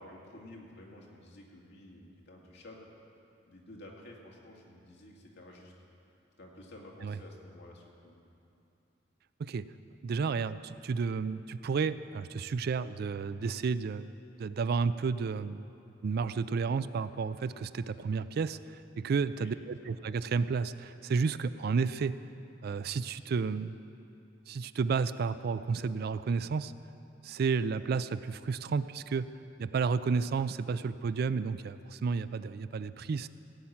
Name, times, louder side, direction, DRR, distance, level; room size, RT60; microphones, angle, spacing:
voice 1, 0.0-2.9 3.5-5.7 6.4-8.2 19.3-19.5 19.8-20.1, left 1 dB, 65° left, -2 dB, 2.1 m, -51 dB
voice 2, 10.0-14.1 14.4-15.7 16.0-18.6 19.0-22.1 22.6-23.7 24.5-26.7 27.2-29.3 29.6-33.3, right 5 dB, 55° right, 15 dB, 0.4 m, -31 dB
16.0 x 5.8 x 8.7 m, 2.7 s
head